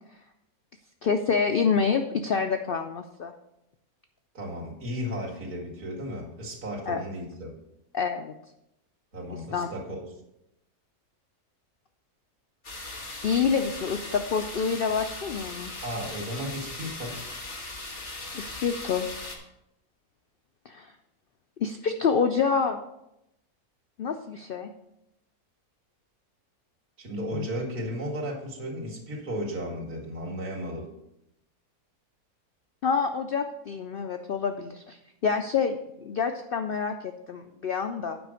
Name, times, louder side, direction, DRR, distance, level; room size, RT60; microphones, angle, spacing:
voice 1, 1.0-3.3 6.9-7.0 7.9-8.3 9.5-9.7 13.2-15.7 18.3-19.1 20.7-20.9 21.6-22.8 24.0-24.7 27.3-27.5 32.8-35.0 35.2-38.2, left 6 dB, 75° left, 6 dB, 0.5 m, -27 dB
voice 2, 4.3-7.5 9.1-10.0 15.8-17.2 27.0-30.9, equal, 85° right, -3 dB, 2.5 m, -34 dB
sound 1, 12.6-19.4, left 2 dB, 35° left, 1.5 m, -39 dB
8.2 x 5.1 x 6.4 m, 0.84 s
omnidirectional pair, 1.6 m